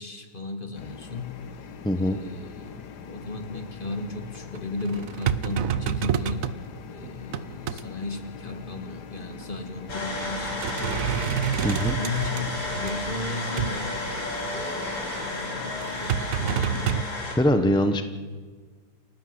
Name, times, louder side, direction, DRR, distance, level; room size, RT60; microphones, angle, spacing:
voice 1, 0.0-1.4 1.9-6.5 6.9-11.7 11.9-18.0, left 3 dB, 25° left, 6 dB, 1.9 m, -35 dB
sound 1, 0.7-16.7, left 7 dB, 65° left, 1.6 m, -43 dB
voice 2, 1.8-2.2 11.6-12.0 17.3-18.0, left 1 dB, 5° left, 7 dB, 0.5 m, -22 dB
sound 2, 4.3-6.6 7.0-7.9 9.3-9.4 9.9-10.1 10.5-12.9 13.6-13.8 15.8-17.0, right 9 dB, 60° right, 0.9 m, -28 dB
sound 3, 9.9-17.4, left 2 dB, 80° left, 4.8 m, -32 dB
29.5 x 12.5 x 8.0 m, 1.5 s
omnidirectional pair, 2.1 m